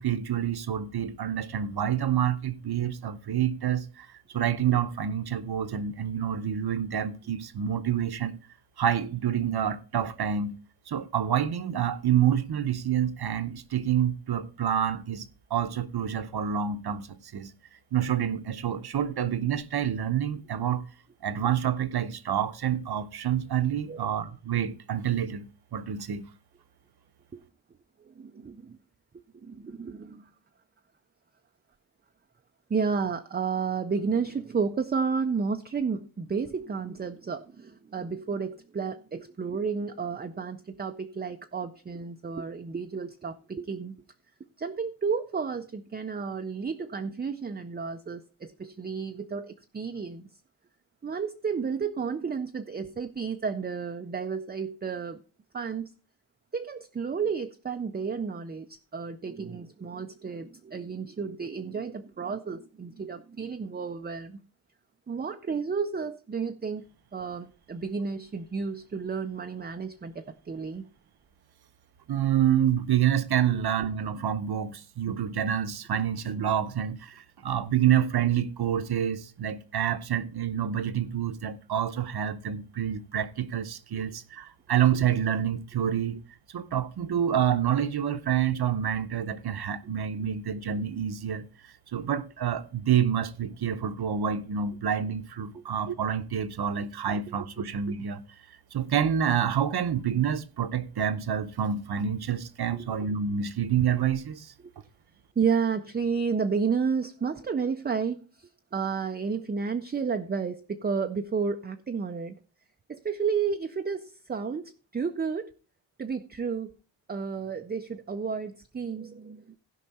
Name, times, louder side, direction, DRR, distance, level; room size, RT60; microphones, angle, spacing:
voice 1, 0.0-4.1 4.3-8.3 8.8-10.6 10.9-15.2 15.5-17.5 17.9-20.8 21.2-26.3 72.1-86.2 86.5-91.5 91.9-98.2 98.7-104.5, right 9 dB, 55° right, 0.8 m, -28 dB
voice 2, 28.1-28.8 29.4-30.3 32.7-43.9 44.6-50.2 51.0-55.2 55.5-55.9 56.5-64.4 65.1-66.9 67.1-70.8 73.5-73.6 84.0-84.1 95.5-95.7 102.7-102.9 105.4-112.4 112.9-115.5 116.0-116.7 117.1-119.6, right 5 dB, 25° right, 0.4 m, -32 dB
15.5 x 5.5 x 4.1 m
wide cardioid pair, 180°, 46 cm